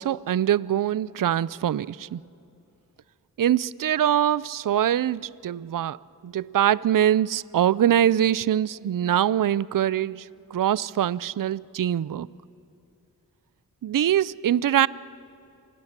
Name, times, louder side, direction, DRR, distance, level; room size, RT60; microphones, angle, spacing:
voice 1, 0.0-2.2 3.4-6.0 6.2-12.3 13.8-14.9, right 11 dB, 65° right, 0.5 m, -23 dB
26.5 x 19.5 x 7.4 m
wide cardioid pair, 65°, 36 cm